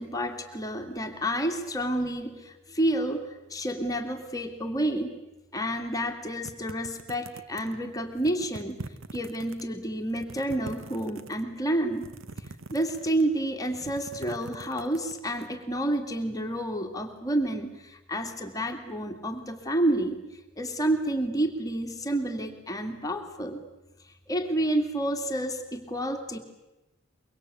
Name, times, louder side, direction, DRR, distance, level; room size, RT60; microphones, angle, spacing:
voice 1, 0.0-5.2 5.5-12.1 12.4-23.6 24.0-26.4, right 1 dB, 20° left, 4 dB, 2.4 m, -30 dB
sound 1, 6.4-7.8 8.2-9.6 10.0-11.4 11.9-13.3 13.6-15.5, right 3 dB, 80° right, 1.1 m, -43 dB
24.0 x 23.5 x 8.6 m, 0.99 s
head